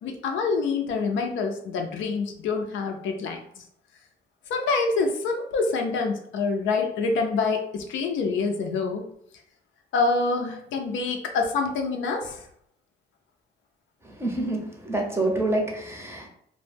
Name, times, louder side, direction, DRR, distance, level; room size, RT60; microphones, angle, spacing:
voice 1, 0.0-3.6 4.5-9.1 9.9-12.4, left 4 dB, 75° left, 4 dB, 0.5 m, -26 dB
voice 2, 14.0-16.3, right 2 dB, 15° right, 1 dB, 0.6 m, -27 dB
2.1 x 2.0 x 3.2 m, 0.70 s
cardioid pair, 90°, 20 cm